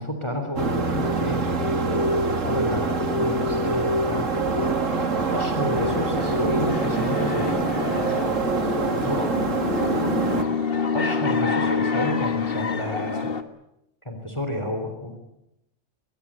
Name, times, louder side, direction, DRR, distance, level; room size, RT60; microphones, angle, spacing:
voice 1, 0.0-1.4 2.4-4.3 5.3-7.6 8.9-9.3 10.9-13.3 14.1-15.2, equal, 20° left, 6 dB, 3.5 m, -30 dB
sound 1, 0.6-10.4, right 3 dB, 80° right, 2.4 m, -24 dB
sound 2, 5.7-13.4, left 5 dB, 50° left, 1.7 m, -27 dB
23.0 x 21.5 x 8.7 m, 0.83 s
omnidirectional pair, 1.3 m